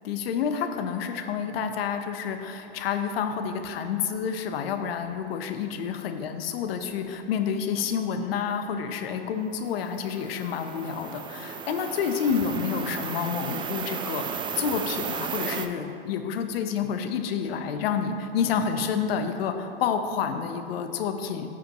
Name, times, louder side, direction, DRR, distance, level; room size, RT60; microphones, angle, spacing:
voice 1, 0.0-21.5, left 7 dB, 70° left, 7 dB, 0.9 m, -29 dB
sound 1, 9.7-15.7, right 7 dB, 15° right, 0.4 m, -34 dB
15.0 x 5.1 x 3.0 m, 2.8 s
hypercardioid pair, 105°, 30 cm